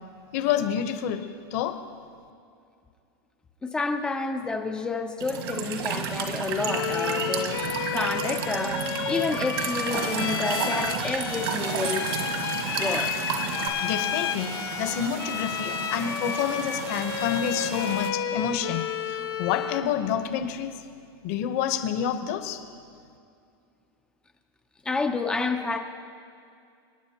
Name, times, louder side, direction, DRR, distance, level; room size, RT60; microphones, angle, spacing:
voice 1, 0.3-1.8 13.8-20.7 21.2-22.6, left 9 dB, 40° left, 8 dB, 0.8 m, -28 dB
voice 2, 3.6-12.1 12.8-13.1 24.8-25.8, left 3 dB, 5° left, 5 dB, 0.4 m, -30 dB
Walk footsteps / Chirp tweet / Stream, 5.2-13.7, right 6 dB, 75° right, 1.6 m, -31 dB
Bowed string instrument, 6.6-20.0, left 9 dB, 70° left, 1.2 m, -31 dB
sound 1, 11.3-18.1, right 8 dB, 35° right, 0.7 m, -38 dB
26.5 x 9.5 x 2.9 m, 2.4 s
supercardioid pair, 175°, 13 cm